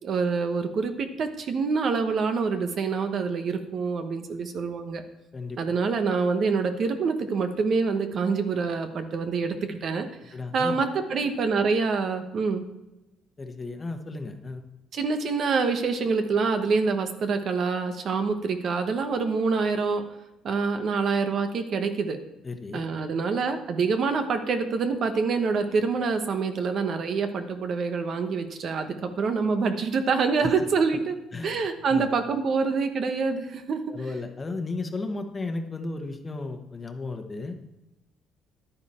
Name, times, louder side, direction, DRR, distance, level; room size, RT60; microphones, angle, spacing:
voice 1, 0.0-5.0 5.6-12.6 14.9-20.0 20.4-22.2 22.7-31.1 31.4-33.8, right 4 dB, 50° right, 7 dB, 1.1 m, -26 dB
voice 2, 10.3-10.8 13.4-14.6 22.4-22.9 30.4-30.5 31.3-31.6 31.9-32.1 33.9-37.6, left 3 dB, 25° left, 5 dB, 1.2 m, -34 dB
11.0 x 9.5 x 4.4 m, 0.99 s
cardioid pair, 125°, 0 cm